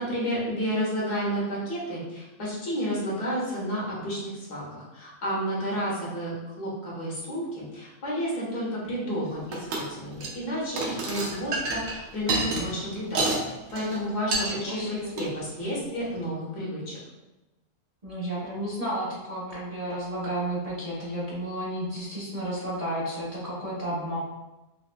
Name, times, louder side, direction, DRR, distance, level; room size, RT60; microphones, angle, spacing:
voice 1, 0.0-13.2 13.7-17.0, equal, 85° left, -6 dB, 1.8 m, -31 dB
sound 1, 9.5-9.9 10.1-10.4 10.8-13.4 13.7-14.0 14.3-14.5 15.1-15.3, right 2 dB, 85° right, 1.3 m, -28 dB
voice 2, 14.4-15.1 18.0-24.2, right 1 dB, 30° right, -8 dB, 0.9 m, -32 dB
5.4 x 2.5 x 2.2 m, 1.0 s
omnidirectional pair, 1.6 m